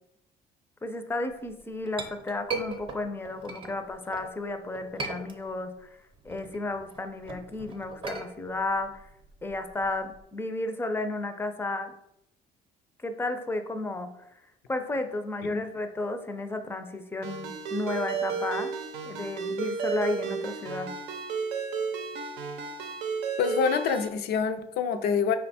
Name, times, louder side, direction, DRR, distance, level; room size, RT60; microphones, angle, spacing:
voice 1, 0.8-6.0 6.2-9.1 9.4-11.9 13.0-14.4 14.7-18.7 19.0-20.9, left 2 dB, 15° left, 7 dB, 0.4 m, -33 dB
Chink clink, 1.5-4.3 4.7-5.8 6.1-10.2, right 3 dB, 30° right, 0.7 m, -38 dB
Ringtone, 17.2-24.1, right 5 dB, 90° right, 0.6 m, -33 dB
voice 2, 23.4-25.4, left 6 dB, 75° left, 9 dB, 0.5 m, -26 dB
5.1 x 2.2 x 4.1 m, 0.80 s
cardioid pair, 110°, 17 cm